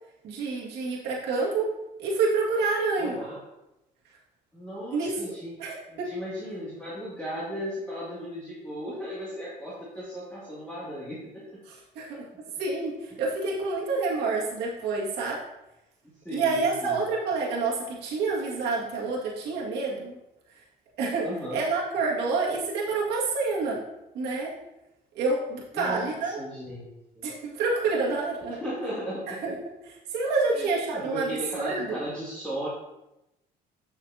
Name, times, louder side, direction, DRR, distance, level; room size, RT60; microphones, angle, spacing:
voice 1, 0.2-1.7 2.0-3.2 4.9-5.1 5.6-6.1 11.7-12.3 12.6-15.4 16.3-20.1 21.0-23.8 24.1-24.5 25.1-26.4 27.2-28.6 29.4-29.5 29.8-31.3 31.6-32.0, right 3 dB, 85° right, -4 dB, 2.0 m, -28 dB
voice 2, 3.0-3.4 4.5-11.4 12.0-12.2 16.2-17.0 21.2-21.6 25.7-27.3 28.6-29.4 30.5-32.7, equal, 5° left, -9 dB, 2.3 m, -36 dB
9.5 x 6.0 x 2.8 m, 0.93 s
cardioid pair, 110°, 17 cm